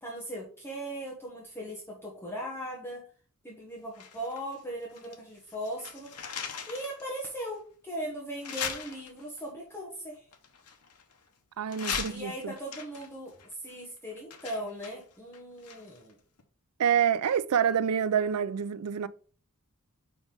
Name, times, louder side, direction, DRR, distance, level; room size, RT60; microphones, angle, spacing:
voice 1, 0.0-3.0 3.4-6.1 6.7-10.3 12.1-16.2, equal, 10° left, 1.3 m, -39 dB
sound 1, 3.9-5.2 5.5-7.0 7.5-7.6 8.4-9.4 10.3-11.3 11.7-16.1 16.4-16.5, left 6 dB, 90° left, 1.0 m, -39 dB
voice 2, 11.6-12.5 16.8-19.1, right 8 dB, 80° right, 0.4 m, -27 dB
5.2 x 4.8 x 3.8 m
head